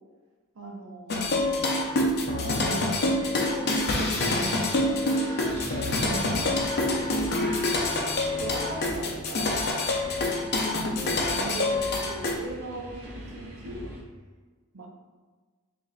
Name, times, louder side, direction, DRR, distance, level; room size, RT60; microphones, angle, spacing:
voice 1, 0.5-1.7 2.4-4.4 4.7-7.2 8.4-9.6 10.2-13.9 14.7-14.9, right 1 dB, 70° right, 0 dB, 0.6 m, -40 dB
sound 1, 1.1-12.4, left 2 dB, 50° left, 0.5 m, -26 dB
sound 2, 5.0-14.0, equal, 50° right, 1.1 m, -41 dB
3.2 x 2.5 x 3.9 m, 1.4 s
head